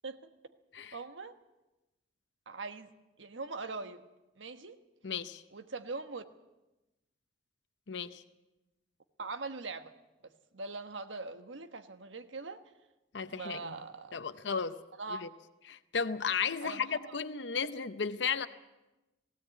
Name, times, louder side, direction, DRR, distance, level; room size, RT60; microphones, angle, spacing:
voice 1, 0.9-1.3 2.5-2.9 3.2-4.0 4.4-4.8 5.5-6.2 9.2-9.9 10.2-12.6 13.3-14.2 15.0-15.3 16.6-17.2, right 3 dB, 90° right, 1.3 m, -41 dB
voice 2, 5.0-5.4 7.9-8.2 13.1-13.8 14.1-14.8 15.1-15.3 15.7-18.5, left 6 dB, 70° left, 0.7 m, -34 dB
19.0 x 16.5 x 8.4 m
head